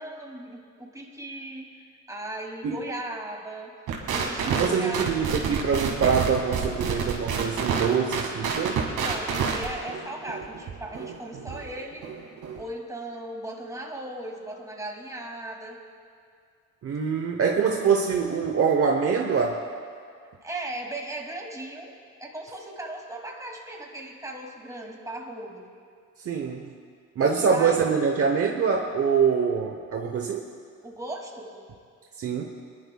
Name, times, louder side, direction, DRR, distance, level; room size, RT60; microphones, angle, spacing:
voice 1, 0.0-1.7 2.1-3.7 4.1-5.0 9.0-12.1 12.6-15.8 20.4-21.9 22.2-25.7 27.4-27.9 30.8-31.5, right 1 dB, 10° right, 0 dB, 2.4 m, -37 dB
sound 1, 3.9-12.6, right 6 dB, 85° right, 2.0 m, -29 dB
voice 2, 4.5-8.9 16.8-19.7 26.2-26.7 27.2-30.4 32.2-32.5, right 6 dB, 50° right, 3 dB, 0.9 m, -24 dB
23.5 x 11.5 x 2.3 m, 2.2 s
cardioid pair, 90°, 30 cm